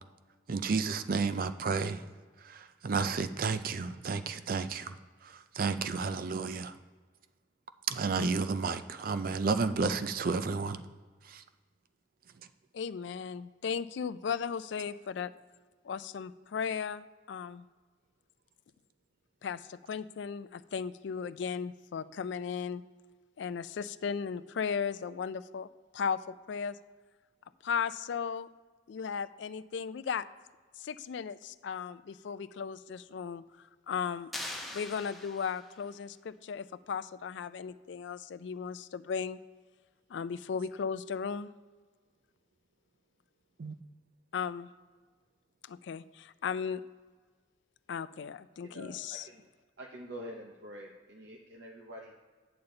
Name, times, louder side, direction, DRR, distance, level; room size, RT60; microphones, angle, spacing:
voice 1, 0.5-2.0 2.4-4.9 5.2-6.7 7.9-10.8 11.3-11.4 43.6-43.7, right 4 dB, 50° right, 11 dB, 0.4 m, -31 dB
voice 2, 12.7-15.3 15.8-17.6 19.4-22.8 23.4-25.7 25.9-26.2 26.5-26.8 27.6-28.5 28.9-30.3 30.8-33.4 33.9-34.3 34.6-39.4 40.1-41.5 44.3-44.7 45.7-46.8 47.9-49.3, left 6 dB, 70° left, 14 dB, 0.3 m, -36 dB
sound 1, 34.3-35.8, left 1 dB, ahead, 0.9 m, -42 dB
voice 3, 48.6-49.5 49.8-52.1, equal, 65° right, 0 dB, 0.8 m, -46 dB
8.8 x 6.8 x 3.9 m, 1.4 s
head